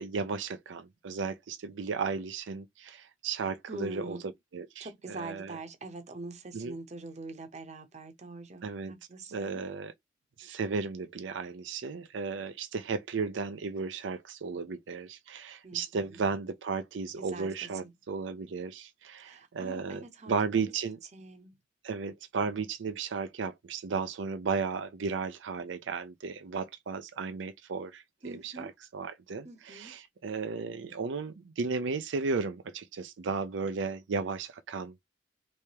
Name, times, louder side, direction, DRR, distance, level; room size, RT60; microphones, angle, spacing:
voice 1, 0.0-4.2 4.5-5.6 6.5-6.7 8.6-8.9 9.3-9.9 10.4-21.0 21.8-35.0, right 4 dB, 85° right, 0.5 m, -34 dB
voice 2, 3.7-4.3 4.8-9.6 15.6-16.3 17.2-17.9 19.2-20.4 21.1-21.5 28.2-28.7 29.4-29.9, right 2 dB, 40° right, 0.8 m, -44 dB
3.3 x 3.2 x 2.9 m
head